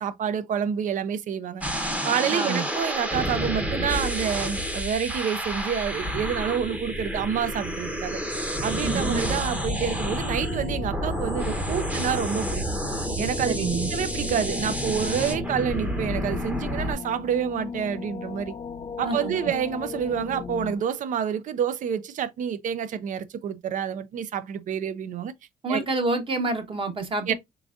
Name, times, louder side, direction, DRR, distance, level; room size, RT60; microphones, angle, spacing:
voice 1, 0.0-1.6 2.0-8.2 8.6-12.7 13.2-18.5 19.0-25.3 25.7-25.8 27.3-27.4, right 8 dB, 50° right, 0.5 m, -28 dB
sound 1, 1.6-16.9, equal, 10° right, 0.8 m, -29 dB
voice 2, 2.3-2.7 8.8-9.2 13.5-13.9 19.0-19.5 25.6-27.3, right 3 dB, 30° right, 1.0 m, -28 dB
sound 2, 8.7-20.8, left 6 dB, 30° left, 0.4 m, -37 dB
3.9 x 3.4 x 2.4 m
cardioid pair, 110°, 17 cm